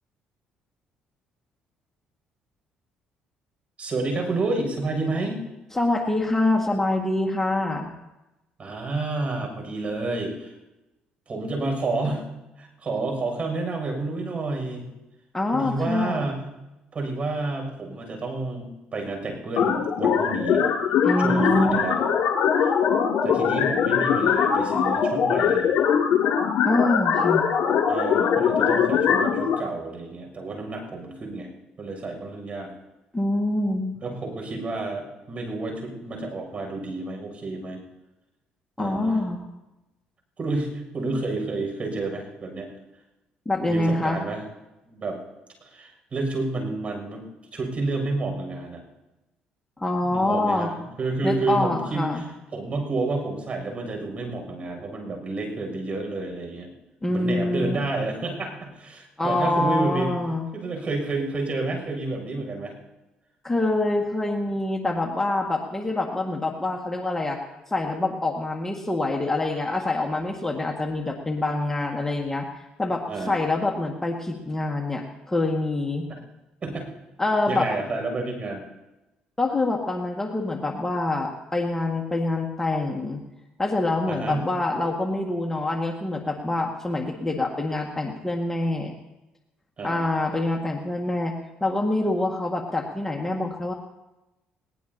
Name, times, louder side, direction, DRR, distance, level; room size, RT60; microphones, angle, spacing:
voice 1, 3.8-5.4 8.6-10.5 11.3-12.3 12.6-14.8 15.5-16.4 16.9-20.6 21.2-22.0 23.2-25.8 27.9-31.5 31.8-32.7 34.0-37.8 38.8-39.2 40.4-42.7 43.7-44.4 44.9-45.2 45.7-47.2 47.5-48.8 50.1-52.1 52.5-56.7 57.1-60.1 60.5-62.7 73.1-73.3 76.6-76.8 77.5-78.6 84.1-84.5 89.8-90.0, right 2 dB, 40° right, 2 dB, 7.0 m, -30 dB
voice 2, 5.7-7.9 15.3-16.3 21.0-21.8 26.6-27.5 33.1-34.0 38.8-39.5 43.5-44.2 49.8-50.7 51.2-52.2 57.0-57.8 59.2-60.5 63.4-67.4 67.7-72.5 72.8-76.1 77.2-77.7 79.4-83.2 83.6-88.9 89.8-91.3 91.6-93.7, left 2 dB, 10° left, 0 dB, 1.9 m, -25 dB
sound 1, 19.6-29.5, left 7 dB, 65° left, 2.6 m, -22 dB
21.0 x 18.5 x 2.9 m, 1.0 s
supercardioid pair, 70°, 3 cm